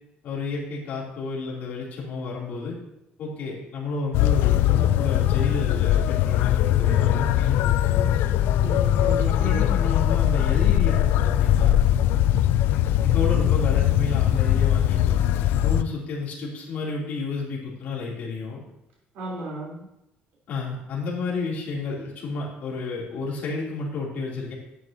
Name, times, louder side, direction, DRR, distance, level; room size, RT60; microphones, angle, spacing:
voice 1, 0.2-2.8 3.2-8.0 9.3-11.8 13.0-15.2 15.6-18.6 20.5-24.5, left 4 dB, 50° left, -4 dB, 3.4 m, -31 dB
sound 1, 4.1-15.8, left 12 dB, 75° left, 0.4 m, -21 dB
voice 2, 7.9-9.6 19.1-19.9, right 2 dB, 75° right, -4 dB, 4.0 m, -35 dB
12.0 x 9.1 x 3.0 m, 0.88 s
cardioid pair, 175°, 4 cm